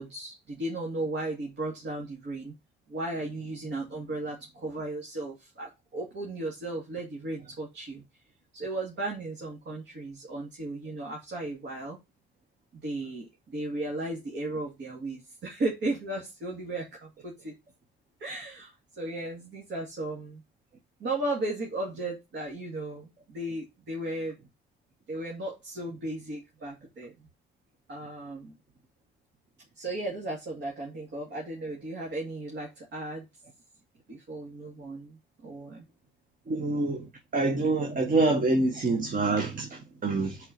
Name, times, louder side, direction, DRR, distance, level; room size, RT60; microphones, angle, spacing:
voice 1, 0.0-2.5 2.9-8.0 8.5-12.0 12.8-17.5 18.2-20.4 21.0-24.4 25.1-27.1 27.9-28.5 29.8-33.2 34.1-35.8, right 2 dB, 65° right, 2.2 m, -35 dB
voice 2, 36.5-37.1 37.3-40.4, right 3 dB, 45° right, 1.3 m, -26 dB
4.6 x 4.5 x 5.7 m
cardioid pair, 90°, 20 cm